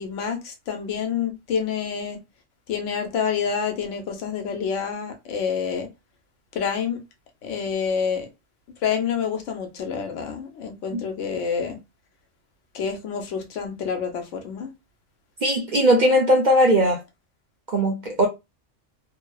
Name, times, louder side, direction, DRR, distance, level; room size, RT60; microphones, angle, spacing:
voice 1, 0.0-2.2 2.7-5.9 6.5-7.0 7.4-8.3 8.8-11.8 12.7-14.7, left 6 dB, 85° left, 1.1 m, -28 dB
voice 2, 15.4-17.0 17.7-18.3, equal, 55° right, 0.5 m, -19 dB
2.7 x 2.0 x 2.2 m
omnidirectional pair, 1.3 m